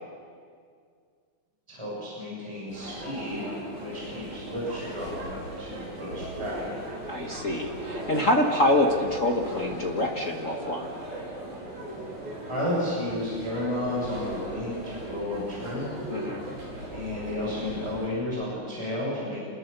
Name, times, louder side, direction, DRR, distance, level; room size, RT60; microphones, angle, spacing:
voice 1, 1.7-3.4 3.7-6.8 12.5-15.9 16.9-19.4, left 1 dB, 10° right, -6 dB, 6.6 m, -32 dB
sound 1, 2.7-18.1, right 1 dB, 60° right, 6.2 m, -38 dB
voice 2, 7.1-10.8 16.1-16.5, left 1 dB, 50° left, 1 dB, 0.9 m, -25 dB
28.0 x 21.0 x 6.8 m, 2.1 s
omnidirectional pair, 3.9 m